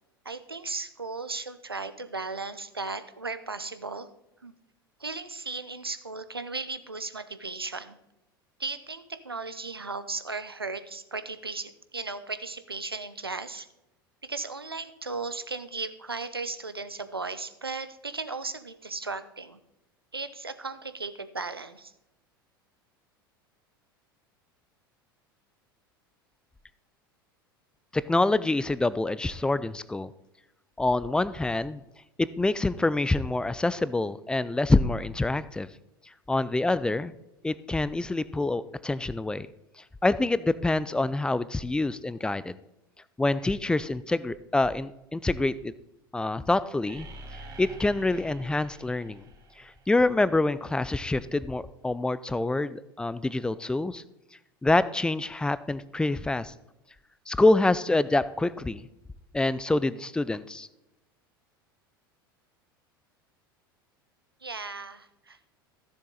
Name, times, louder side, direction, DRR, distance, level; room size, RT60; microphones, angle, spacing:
voice 1, 0.2-4.1 4.4-4.5 5.0-8.0 8.6-13.7 14.2-19.6 20.1-21.9 64.4-65.5, right 3 dB, 85° right, 11 dB, 0.8 m, -36 dB
voice 2, 27.9-30.1 30.8-31.8 32.2-35.7 36.3-37.1 37.4-39.5 40.0-42.5 43.2-45.7 46.1-47.1 47.6-49.2 49.6-54.0 54.6-56.5 57.3-58.9 59.3-60.7, left 2 dB, 5° left, 17 dB, 0.4 m, -26 dB
sound 1, 46.9-50.7, right 1 dB, 30° right, 2.1 m, -47 dB
15.5 x 7.2 x 4.0 m, 0.89 s
figure-of-eight pair, 80°, 12 cm